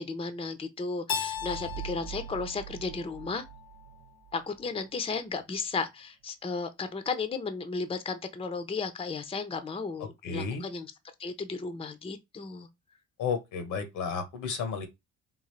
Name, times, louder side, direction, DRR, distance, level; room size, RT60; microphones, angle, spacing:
voice 1, 0.0-3.4 4.3-10.9 11.2-12.7, left 4 dB, 20° left, 0.5 m, -34 dB
Keyboard (musical), 1.1-3.9, left 8 dB, 65° left, 0.5 m, -37 dB
sound 1, 1.4-4.7, right 12 dB, 70° right, 0.4 m, -44 dB
voice 2, 10.2-10.6 13.2-14.9, left 5 dB, 90° left, 1.1 m, -32 dB
3.7 x 2.4 x 3.1 m
cardioid pair, 90°, 30 cm